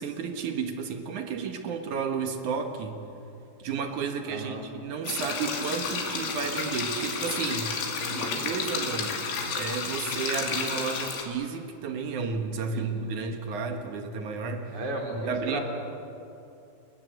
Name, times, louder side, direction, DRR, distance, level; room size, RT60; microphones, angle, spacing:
voice 1, 0.0-3.0 3.6-7.8 8.1-9.2 9.5-14.8 15.1-15.6, right 5 dB, 60° right, 5 dB, 2.2 m, -32 dB
voice 2, 4.3-4.6 8.0-8.4 12.7-12.9 14.7-15.6, right 2 dB, 45° right, 1 dB, 4.8 m, -35 dB
sound 1, 5.0-11.2, left 5 dB, 90° left, 4.9 m, -31 dB
30.0 x 20.5 x 8.0 m, 2.7 s
omnidirectional pair, 5.2 m